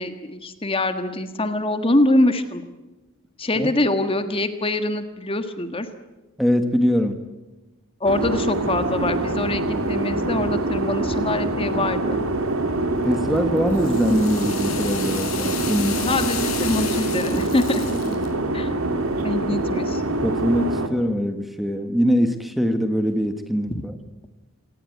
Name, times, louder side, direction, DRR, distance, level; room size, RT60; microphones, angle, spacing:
voice 1, 0.0-2.6 3.4-5.9 8.0-12.2 16.0-17.8 18.5-18.8 19.2-20.0 23.7-23.8, left 1 dB, 25° left, 9 dB, 1.5 m, -24 dB
voice 2, 6.4-7.2 13.0-16.0 20.2-23.9, equal, ahead, 8 dB, 1.4 m, -22 dB
sound 1, 8.0-20.9, right 2 dB, 70° right, 2.5 m, -25 dB
sound 2, 13.1-18.3, left 9 dB, 65° left, 5.1 m, -33 dB
27.0 x 18.0 x 9.4 m, 1.1 s
head